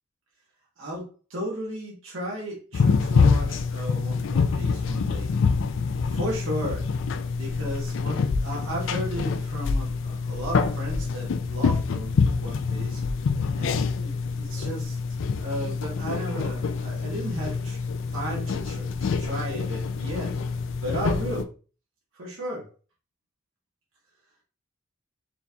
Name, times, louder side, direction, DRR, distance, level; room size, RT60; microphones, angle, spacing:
voice 1, 0.8-5.3 6.0-6.9 7.3-13.0 13.5-15.0 15.4-17.8 18.1-20.3 20.8-21.5 22.1-22.7, right 1 dB, 90° right, -4 dB, 1.4 m, -35 dB
sound 1, 2.7-21.4, left 5 dB, 70° left, 0.4 m, -26 dB
4.3 x 2.9 x 3.3 m, 0.36 s
head